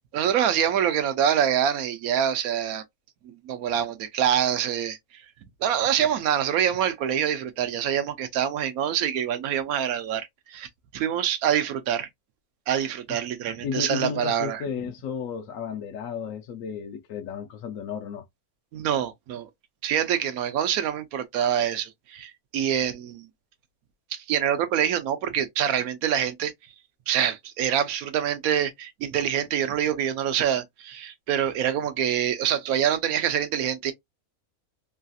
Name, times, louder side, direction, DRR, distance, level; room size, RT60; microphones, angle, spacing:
voice 1, 0.1-2.8 3.2-5.0 5.6-10.7 10.9-12.1 12.7-14.6 18.7-19.5 19.8-23.3 24.1-26.5 27.1-33.9, right 9 dB, 80° right, 1.1 m, -25 dB
voice 2, 13.6-18.3, left 7 dB, 70° left, 0.9 m, -33 dB
3.1 x 2.4 x 2.5 m
omnidirectional pair, 1.5 m